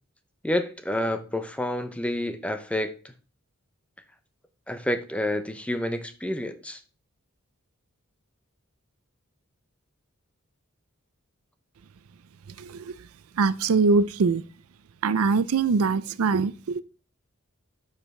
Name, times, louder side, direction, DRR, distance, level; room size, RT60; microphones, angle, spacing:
voice 1, 0.4-2.9 4.7-6.8, left 1 dB, 5° left, 0.6 m, -29 dB
voice 2, 12.6-12.9 13.4-14.4 15.0-16.8, right 4 dB, 80° right, 0.5 m, -23 dB
10.0 x 5.0 x 3.2 m
head